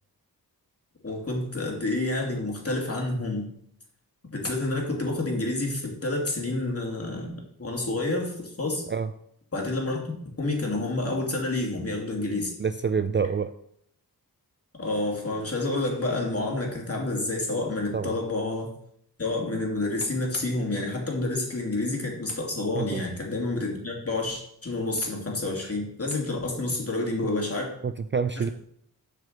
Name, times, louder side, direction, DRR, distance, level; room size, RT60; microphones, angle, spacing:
voice 1, 1.0-3.5 4.3-7.3 7.6-8.8 9.5-12.5 14.8-18.7 19.2-27.7 28.4-28.5, left 2 dB, 40° left, -1 dB, 2.6 m, -29 dB
voice 2, 12.6-13.5 17.9-18.2 22.7-23.0 27.8-28.5, right 6 dB, 30° right, 11 dB, 0.4 m, -27 dB
7.9 x 5.0 x 6.6 m, 0.71 s
wide cardioid pair, 80°, 38 cm